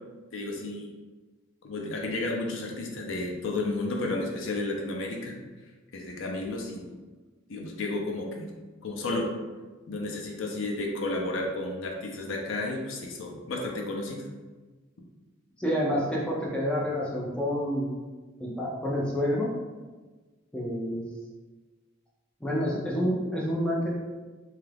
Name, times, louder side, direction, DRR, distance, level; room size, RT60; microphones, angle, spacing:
voice 1, 0.3-0.9 1.6-5.3 5.9-7.0 7.5-8.5 8.8-9.3 9.9-14.3, left 2 dB, 65° left, 0 dB, 0.5 m, -32 dB
voice 2, 15.6-17.9 18.4-19.5 20.5-21.0 22.4-24.0, equal, 5° left, -5 dB, 0.4 m, -28 dB
2.8 x 2.3 x 3.3 m, 1.3 s
head